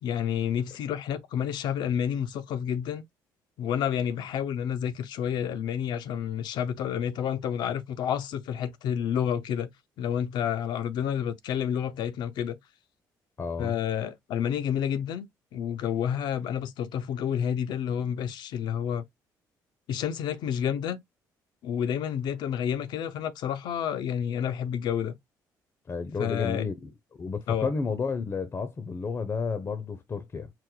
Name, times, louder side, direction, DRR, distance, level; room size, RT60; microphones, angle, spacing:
voice 1, 0.0-3.0 3.6-9.7 10.0-12.6 13.6-15.3 15.5-19.0 19.9-21.0 21.6-25.2 26.2-26.7 27.5-27.7, left 9 dB, 75° left, 0.6 m, -29 dB
voice 2, 13.4-13.8 25.9-26.9 27.2-30.5, left 5 dB, 35° left, 0.7 m, -31 dB
4.7 x 2.0 x 3.8 m
supercardioid pair, 75°, 8 cm